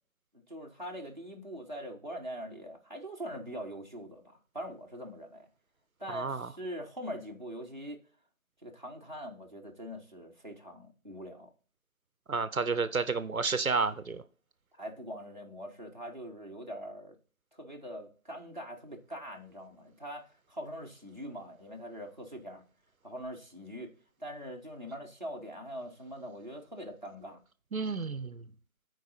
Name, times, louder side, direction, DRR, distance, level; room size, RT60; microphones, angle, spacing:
voice 1, 0.3-5.5 6.0-8.0 8.6-11.5 14.7-17.2 17.5-22.6 23.0-23.9 24.2-27.4, equal, 35° right, 0.9 m, -43 dB
voice 2, 6.1-6.5 12.3-14.2 27.7-28.4, right 4 dB, 85° right, 0.8 m, -31 dB
14.0 x 4.7 x 2.6 m
figure-of-eight pair, 170°, 41 cm